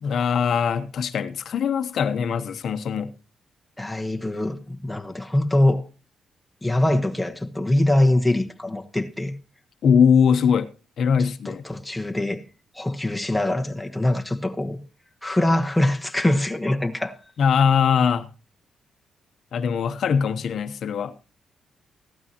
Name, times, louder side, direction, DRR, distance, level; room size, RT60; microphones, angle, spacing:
voice 1, 0.0-3.1 9.8-10.7 11.0-11.6 17.4-18.3 19.5-21.1, left 7 dB, 65° left, 0.8 m, -21 dB
voice 2, 3.8-5.8 6.6-9.3 11.4-12.4 12.7-14.8 15.2-17.2, left 1 dB, 5° left, 1.1 m, -23 dB
15.0 x 12.5 x 2.9 m
cardioid pair, 105°, 0 cm